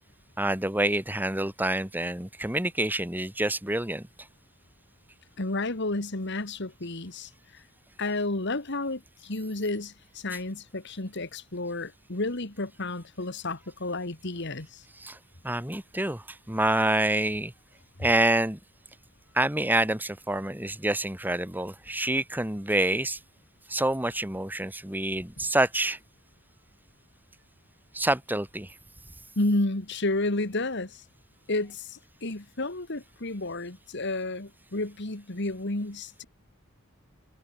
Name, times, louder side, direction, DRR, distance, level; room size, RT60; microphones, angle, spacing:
voice 1, 0.4-4.1 15.0-15.2 15.4-17.5 18.0-18.6 19.3-23.2 23.7-26.0 27.9-28.7, right 1 dB, 10° right, 2.0 m, -27 dB
voice 2, 5.4-7.6 8.0-14.8 29.4-31.0 31.5-36.2, left 2 dB, 60° left, 2.2 m, -31 dB
head